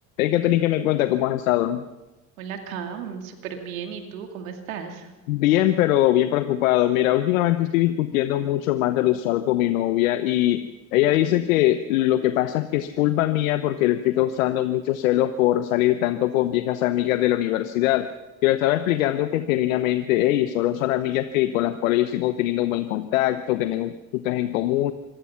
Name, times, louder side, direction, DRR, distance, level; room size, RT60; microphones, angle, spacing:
voice 1, 0.2-1.8 5.3-10.7 10.9-18.1 18.4-24.9, left 14 dB, 85° left, 10 dB, 1.0 m, -22 dB
voice 2, 2.4-5.1, right 7 dB, 85° right, 5 dB, 2.5 m, -35 dB
25.5 x 18.5 x 5.8 m, 1.1 s
hypercardioid pair, 70°, 40 cm